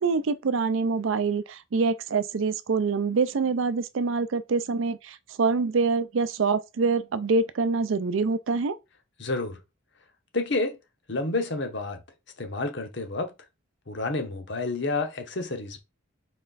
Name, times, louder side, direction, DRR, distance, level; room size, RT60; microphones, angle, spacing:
voice 1, 0.0-8.8, right 4 dB, 70° right, 0.5 m, -25 dB
voice 2, 9.2-9.6 10.3-10.8 11.1-12.0 12.4-13.3 13.9-15.8, left 3 dB, 60° left, 1.0 m, -29 dB
4.2 x 3.2 x 4.0 m
head